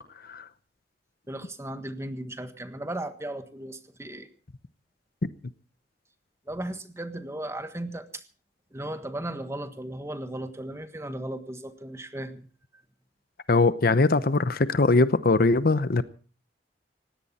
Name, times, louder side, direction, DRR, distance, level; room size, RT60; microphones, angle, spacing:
voice 1, 1.3-4.3 6.5-8.2 8.7-12.4, right 1 dB, 15° right, 9 dB, 1.5 m, -36 dB
voice 2, 13.5-16.0, left 3 dB, 55° left, 14 dB, 0.8 m, -21 dB
19.5 x 17.0 x 4.2 m, 0.37 s
head